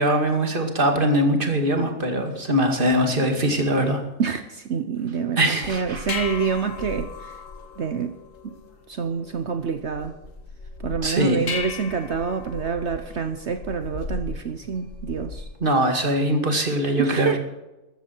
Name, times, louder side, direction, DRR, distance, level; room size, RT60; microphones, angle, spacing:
voice 1, 0.0-4.0 5.4-6.1 11.0-11.4 15.6-17.3, right 1 dB, 40° right, 4 dB, 2.4 m, -22 dB
voice 2, 4.2-7.4 7.8-8.2 8.4-8.5 8.9-10.2 10.8-15.5 17.0-17.4, right 6 dB, 55° right, 8 dB, 1.1 m, -27 dB
sound 1, 5.6-15.6, left 4 dB, 70° left, 1.9 m, -36 dB
14.0 x 13.5 x 4.6 m, 0.99 s
omnidirectional pair, 1.5 m